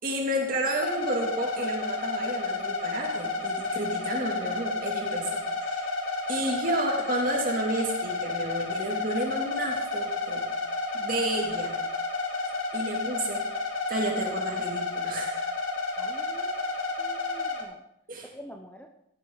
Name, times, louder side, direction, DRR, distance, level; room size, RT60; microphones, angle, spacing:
voice 1, 0.0-5.9 6.3-10.5 10.9-11.7 12.7-13.5 13.9-15.5 18.1-18.3, right 1 dB, 45° right, 0 dB, 2.7 m, -31 dB
sound 1, 0.8-17.6, left 3 dB, 85° left, 2.5 m, -31 dB
voice 2, 16.0-16.6 17.0-17.8 18.3-18.9, equal, 10° left, 4 dB, 0.7 m, -46 dB
14.5 x 11.5 x 4.0 m, 0.80 s
head